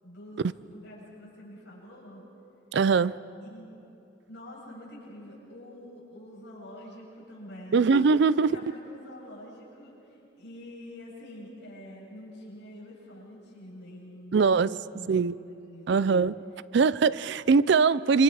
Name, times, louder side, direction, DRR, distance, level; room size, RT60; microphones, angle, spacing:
voice 1, 0.0-2.2 3.4-3.8 4.3-7.9 8.4-14.6 14.9-16.2, left 1 dB, 60° left, -5 dB, 7.4 m, -46 dB
voice 2, 2.7-3.2 7.7-8.5 14.3-14.8 15.1-15.3 15.9-16.4 16.7-18.2, right 5 dB, 60° right, 18 dB, 0.4 m, -22 dB
26.5 x 26.0 x 4.8 m, 2.7 s
head